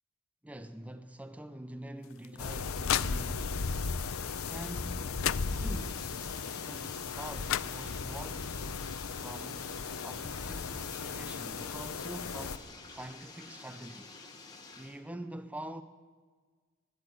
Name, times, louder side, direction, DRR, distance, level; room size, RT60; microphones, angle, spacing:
voice 1, 0.4-3.7 4.5-14.2 14.7-15.8, right 1 dB, 5° right, 0.4 m, -45 dB
sound 1, 2.0-3.7 4.8-4.9 5.2-6.0 7.1-7.2 7.5-8.3, left 12 dB, 70° left, 0.3 m, -35 dB
sound 2, 2.4-12.6, left 4 dB, 85° left, 0.8 m, -36 dB
Bathtub (filling or washing), 5.2-15.0, left 3 dB, 20° left, 1.3 m, -50 dB
14.5 x 10.5 x 8.0 m
head